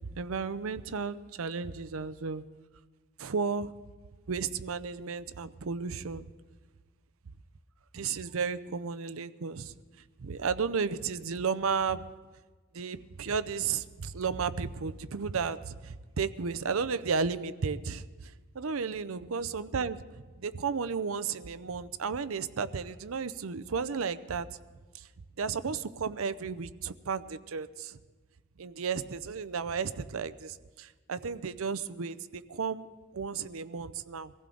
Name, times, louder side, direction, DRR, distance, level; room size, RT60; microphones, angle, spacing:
voice 1, 0.0-2.4 3.2-3.7 4.3-6.3 7.9-9.7 10.2-12.0 12.7-20.0 20.4-24.5 24.9-25.1 25.4-28.0 28.6-32.9 33.1-34.3, right 5 dB, 70° right, 15 dB, 0.6 m, -33 dB
23.0 x 15.5 x 3.9 m, 1.3 s
head